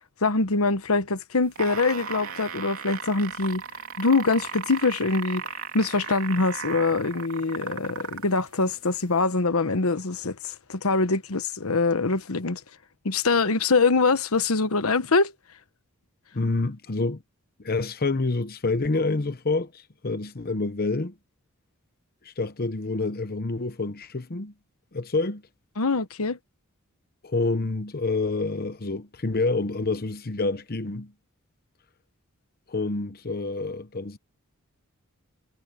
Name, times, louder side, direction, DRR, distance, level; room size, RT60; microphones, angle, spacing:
voice 1, 0.2-3.6 4.0-5.4 5.7-12.6 13.0-15.3 25.8-26.4, left 3 dB, 80° left, 1.1 m, -24 dB
sound 1, 1.4-8.4 9.2-9.3, right 6 dB, 75° right, 3.0 m, -36 dB
voice 2, 16.3-17.2 17.6-21.1 22.2-24.5 24.9-25.4 27.2-31.1 32.7-34.2, left 3 dB, 45° left, 0.9 m, -27 dB
head